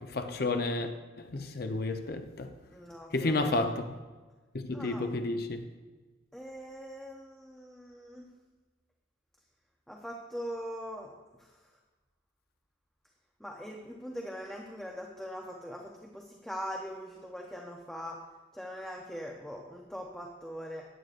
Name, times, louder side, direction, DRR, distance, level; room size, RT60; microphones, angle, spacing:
voice 1, 0.1-0.9 1.3-2.5 3.1-3.8 4.5-5.6, left 2 dB, 55° left, 0.7 m, -31 dB
voice 2, 2.7-3.7 4.7-5.1 6.3-8.3 9.9-11.1 11.4-11.5 13.4-18.2 18.5-20.9, equal, 5° left, 0.8 m, -42 dB
14.0 x 9.6 x 2.5 m
head